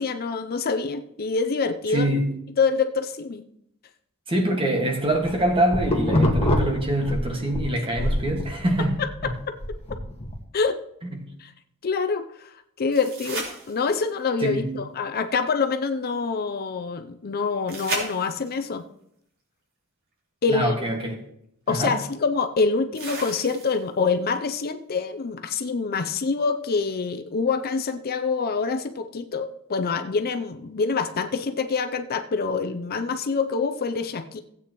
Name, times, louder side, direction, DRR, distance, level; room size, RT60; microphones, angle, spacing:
voice 1, 0.0-2.1 2.6-3.4 9.0-9.5 10.5-10.8 11.4-11.5 11.8-12.5 12.8-18.8 20.4-20.7 21.7-34.4, left 4 dB, 45° left, 0.5 m, -26 dB
voice 2, 1.9-2.4 4.3-9.3 11.1-11.3 14.4-14.7 20.5-21.2 21.7-22.0, right 1 dB, 25° right, 1.6 m, -25 dB
sound 1, 5.1-7.6 8.0-10.4, left 1 dB, 30° left, 1.6 m, -25 dB
sound 2, 12.9-14.2 17.7-18.7 20.6-20.7 22.9-24.0 26.9-27.0, right 2 dB, 60° right, 3.8 m, -34 dB
16.0 x 8.5 x 3.0 m
head